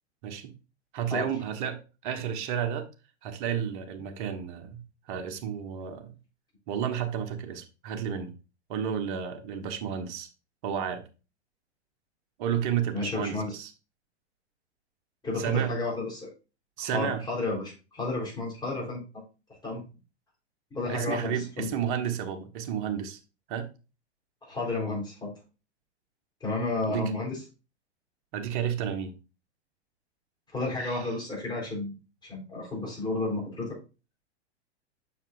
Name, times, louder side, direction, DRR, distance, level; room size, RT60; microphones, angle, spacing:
voice 1, 0.9-2.9 3.2-6.1 6.7-8.3 8.7-10.3 10.6-11.1 12.4-13.7 15.4-15.8 16.8-17.2 20.9-23.2 23.5-23.7 26.9-27.1 28.3-29.1 30.8-31.1, right 8 dB, 50° right, 1.2 m, -31 dB
voice 2, 12.9-13.5 15.2-16.3 16.8-19.0 19.6-19.8 20.7-21.7 24.4-25.3 26.4-27.4 30.5-33.8, left 3 dB, 10° left, 4.0 m, -32 dB
7.2 x 6.1 x 2.6 m
hypercardioid pair, 105°, 34 cm